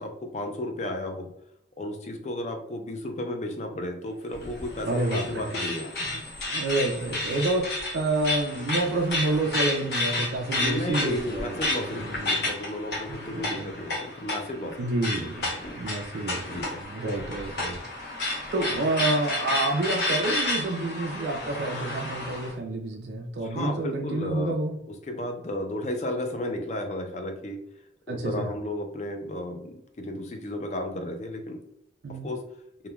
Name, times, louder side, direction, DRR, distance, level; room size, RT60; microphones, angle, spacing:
voice 1, 0.0-1.3 1.8-5.9 10.6-14.9 15.2-15.8 16.4-16.7 23.4-24.5 24.9-27.6 28.1-31.6 32.1-32.4, left 1 dB, 35° left, 5 dB, 0.4 m, -33 dB
sound 1, 4.3-22.5, left 2 dB, 60° left, 0.9 m, -31 dB
voice 2, 4.8-5.5 6.1-12.5 13.1-13.7 14.8-24.8 28.1-28.5 32.0-32.3, right 2 dB, 70° right, 1 dB, 0.4 m, -29 dB
3.0 x 2.1 x 2.2 m, 0.79 s
head